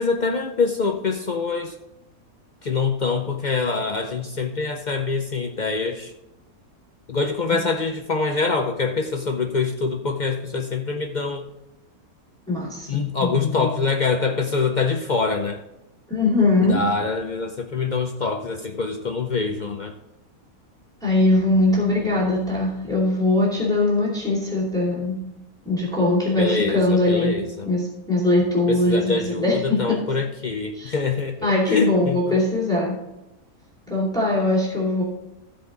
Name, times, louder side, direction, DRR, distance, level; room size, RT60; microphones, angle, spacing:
voice 1, 0.0-1.8 2.6-6.1 7.1-11.5 12.9-15.6 16.6-20.0 26.4-27.7 28.7-32.2, left 4 dB, 55° left, 4 dB, 0.5 m, -25 dB
voice 2, 12.5-13.7 16.1-16.8 21.0-25.2 25.7-27.3 27.7-29.8 30.7-30.9 31.4-33.0 33.9-35.0, left 2 dB, 5° left, -6 dB, 2.6 m, -21 dB
15.0 x 5.1 x 3.9 m, 0.91 s
omnidirectional pair, 1.6 m